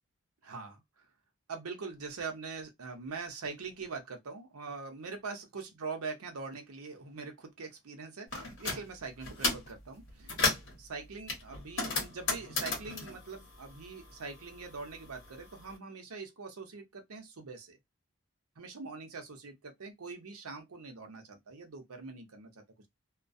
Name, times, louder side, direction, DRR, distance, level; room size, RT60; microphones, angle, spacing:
voice 1, 0.4-1.0 1.5-10.5 10.8-17.8 18.6-22.6, right 4 dB, 80° right, 0.7 m, -43 dB
sound 1, 8.3-8.8 9.2-9.7 10.1-10.7 11.3-14.2 14.5-15.6, left 3 dB, 55° left, 1.0 m, -33 dB
2.3 x 2.2 x 2.5 m
head